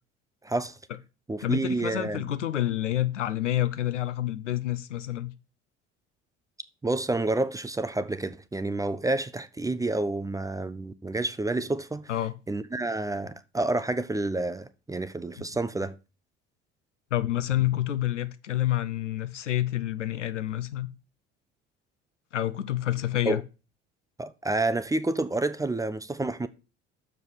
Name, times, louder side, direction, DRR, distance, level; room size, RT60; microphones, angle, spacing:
voice 1, 0.4-0.8 1.3-2.3 6.8-12.1 12.5-15.9 23.3-23.4 24.2-26.5, right 2 dB, 10° right, 0.6 m, -29 dB
voice 2, 1.4-5.3 12.1-12.3 15.4-15.5 17.1-20.9 22.3-23.4, left 13 dB, 80° left, 0.7 m, -28 dB
6.8 x 5.3 x 6.2 m
figure-of-eight pair, 55°, 36 cm